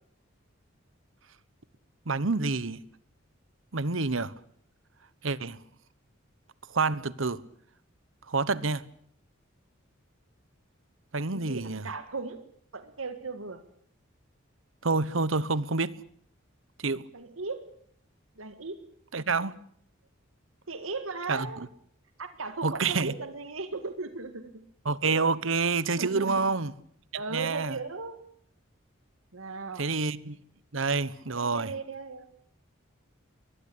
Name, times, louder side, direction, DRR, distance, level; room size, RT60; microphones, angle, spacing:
voice 1, 2.1-2.8 3.7-4.3 5.2-5.6 6.7-7.4 8.3-8.8 11.1-11.8 14.8-15.9 16.8-17.0 19.1-19.5 21.3-21.5 22.6-23.1 24.8-26.7 27.3-27.8 29.8-30.4 30.7-31.7, right 4 dB, 70° right, 1.1 m, -28 dB
voice 2, 11.2-12.4 12.7-13.6 17.1-17.6 18.4-18.8 20.7-21.6 22.2-24.6 26.0-26.4 27.1-28.2 29.3-29.9 31.3-32.4, right 3 dB, 85° right, 1.8 m, -37 dB
23.0 x 19.5 x 8.6 m
head